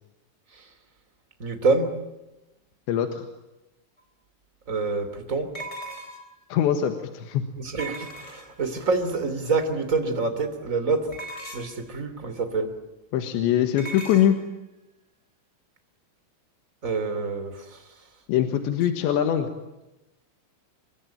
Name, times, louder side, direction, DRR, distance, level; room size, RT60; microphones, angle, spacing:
voice 1, 1.4-1.9 4.7-5.5 7.6-11.1 11.5-12.7 16.8-17.8, right 3 dB, 20° right, 8 dB, 2.3 m, -26 dB
voice 2, 2.9-3.3 6.5-7.4 13.1-14.4 18.3-19.5, left 10 dB, 70° left, 7 dB, 3.6 m, -23 dB
sound 1, 4.0-4.1 5.5-6.4 7.8-8.7 11.1-11.8 13.8-14.3, right 2 dB, 15° left, 3.2 m, -38 dB
26.5 x 23.5 x 9.2 m, 0.98 s
omnidirectional pair, 5.6 m